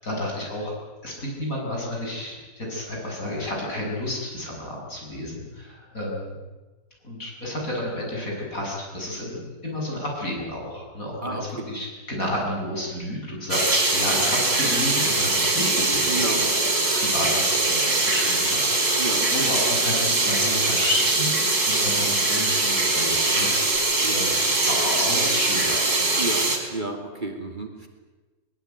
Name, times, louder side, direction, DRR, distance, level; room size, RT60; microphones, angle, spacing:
voice 1, 0.0-0.7 1.0-6.4 7.0-16.6 16.9-21.3 21.7-24.4 24.6-26.4, left 1 dB, 60° left, -2 dB, 8.3 m, -31 dB
voice 2, 11.2-11.7 16.1-16.4 19.0-19.3 24.0-24.2 26.2-26.4 26.7-27.9, right 2 dB, 30° right, 4 dB, 2.9 m, -31 dB
sound 1, 13.5-26.6, right 2 dB, 80° right, 5.3 m, -22 dB
22.0 x 21.0 x 9.5 m, 1.2 s
omnidirectional pair, 1.6 m